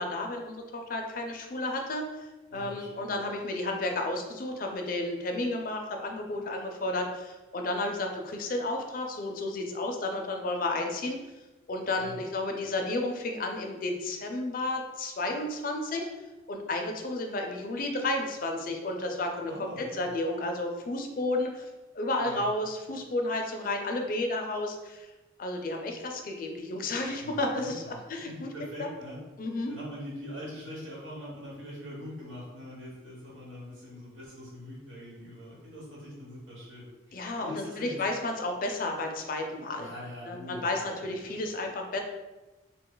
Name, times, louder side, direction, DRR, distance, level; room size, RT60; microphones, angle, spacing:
voice 1, 0.0-11.2 11.7-16.1 16.5-21.7 21.9-25.1 25.4-28.5 28.8-28.9 29.4-29.7 37.1-39.9 40.3-42.0, left 2 dB, 45° left, 3 dB, 0.4 m, -32 dB
voice 2, 2.5-3.1 12.0-12.2 19.5-20.0 22.2-22.4 27.2-29.2 29.7-38.0 39.8-41.4, left 1 dB, 85° right, -6 dB, 1.3 m, -43 dB
2.8 x 2.2 x 3.7 m, 1.1 s
head